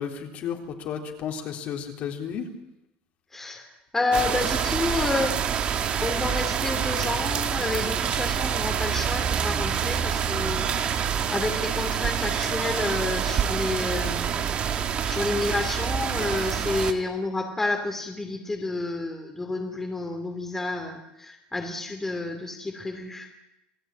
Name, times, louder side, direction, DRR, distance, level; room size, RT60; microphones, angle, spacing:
voice 1, 0.0-2.5, left 8 dB, 45° left, 2 dB, 3.7 m, -33 dB
voice 2, 3.3-3.7 3.9-5.4 6.0-23.4, left 2 dB, 10° left, 3 dB, 2.6 m, -30 dB
sound 1, 4.1-16.9, right 8 dB, 35° right, 1.7 m, -27 dB
28.0 x 18.5 x 9.1 m, 0.91 s
cardioid pair, 165°, 3 cm